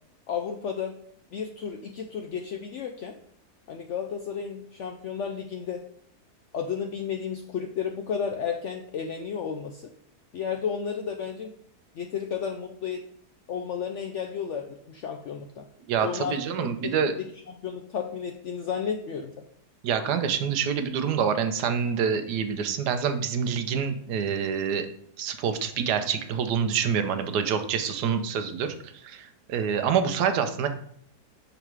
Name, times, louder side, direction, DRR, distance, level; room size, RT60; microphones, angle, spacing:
voice 1, 0.3-0.9 1.3-3.2 3.7-5.8 6.5-9.9 10.3-11.5 11.9-13.0 13.5-15.6 16.0-16.4 16.8-17.2 17.5-19.3, left 7 dB, 75° left, 4 dB, 0.6 m, -32 dB
voice 2, 15.9-17.1 19.8-24.9 25.2-30.7, right 7 dB, 80° right, 8 dB, 1.2 m, -26 dB
5.9 x 4.0 x 4.6 m, 0.66 s
omnidirectional pair, 1.8 m